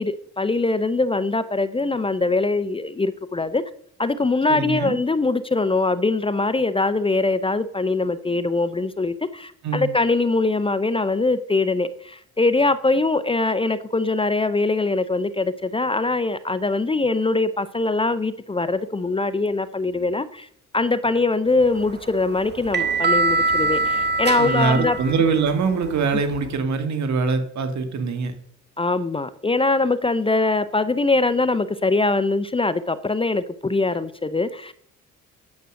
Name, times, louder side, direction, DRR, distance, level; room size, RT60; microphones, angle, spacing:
voice 1, 0.0-3.6 4.0-20.5 20.7-25.0 28.8-34.7, left 3 dB, 20° left, 0.6 m, -22 dB
voice 2, 4.5-5.0 9.6-9.9 24.4-28.3, right 4 dB, 65° right, 1.8 m, -23 dB
sound 1, 21.6-26.5, right 3 dB, 35° right, 1.7 m, -24 dB
9.5 x 7.5 x 6.4 m
cardioid pair, 90°, 30 cm